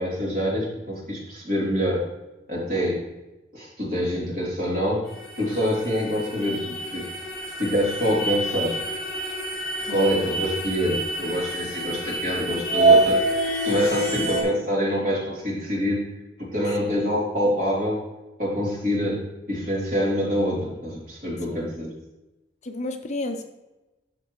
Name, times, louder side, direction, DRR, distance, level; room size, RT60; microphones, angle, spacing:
voice 1, 0.0-2.0 2.5-3.0 3.5-5.0 5.4-7.0 7.6-8.8 9.9-16.0 16.4-18.0 18.4-19.2 19.5-21.9, equal, 50° right, -5 dB, 3.2 m, -25 dB
sound 1, 5.1-14.4, right 2 dB, 5° left, 3.2 m, -26 dB
voice 2, 9.9-10.3 14.1-14.3 16.8-17.0 21.5-21.8 22.6-23.4, left 2 dB, 40° left, 5 dB, 0.7 m, -33 dB
12.5 x 6.3 x 3.2 m, 1.0 s
head